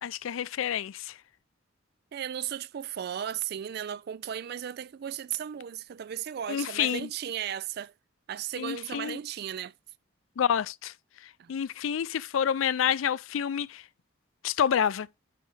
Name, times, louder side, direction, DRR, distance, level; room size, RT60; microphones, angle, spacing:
voice 1, 0.0-1.1 6.5-7.1 8.6-9.2 10.4-10.9 11.5-13.8 14.4-15.1, left 8 dB, 85° left, 0.4 m, -28 dB
voice 2, 2.1-7.9 8.3-9.7 11.4-11.5, right 9 dB, 50° right, 0.3 m, -35 dB
9.4 x 4.9 x 3.3 m
head